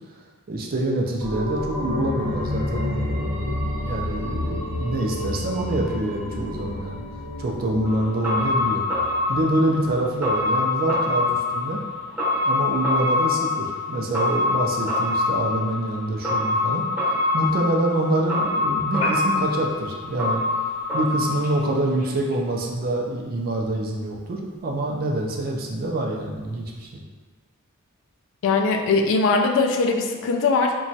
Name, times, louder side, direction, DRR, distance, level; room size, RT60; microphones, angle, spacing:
voice 1, 0.5-7.0 7.4-8.8 9.3-11.8 12.5-20.4 20.9-27.0, right 1 dB, 45° right, 0 dB, 0.4 m, -26 dB
sound 1, 1.2-10.6 10.9-11.0, left 1 dB, 70° right, 0.7 m, -30 dB
sound 2, 7.8-22.0 22.3-22.4, left 3 dB, 10° right, 0.7 m, -25 dB
Piano, 18.9-27.0, left 1 dB, 25° left, 0.6 m, -40 dB
voice 2, 28.4-30.8, left 3 dB, 60° left, 4 dB, 0.3 m, -20 dB
2.9 x 2.2 x 2.7 m, 1.4 s
head